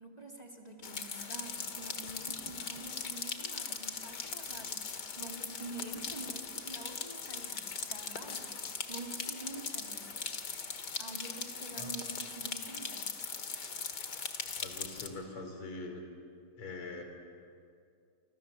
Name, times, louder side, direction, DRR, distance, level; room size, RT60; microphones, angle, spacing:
voice 1, 0.0-10.1 11.0-13.0, right 3 dB, 20° right, 1 dB, 2.4 m, -47 dB
sound 1, 0.8-15.1, left 5 dB, 50° left, 2.3 m, -40 dB
voice 2, 11.8-12.1 14.6-16.0 16.5-17.0, left 3 dB, 80° left, 4 dB, 4.8 m, -43 dB
29.5 x 25.5 x 7.1 m, 2.3 s
omnidirectional pair, 2.4 m